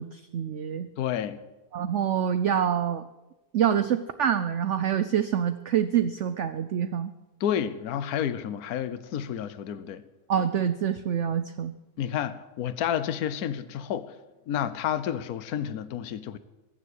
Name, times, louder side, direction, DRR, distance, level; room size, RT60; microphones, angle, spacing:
voice 1, 0.0-0.9 1.7-3.0 3.5-7.1 10.3-11.7, right 9 dB, 65° right, 0.7 m, -26 dB
voice 2, 1.0-1.4 7.4-10.0 12.0-14.1 14.5-16.4, left 9 dB, 60° left, 1.3 m, -30 dB
22.0 x 7.4 x 8.2 m
omnidirectional pair, 1.9 m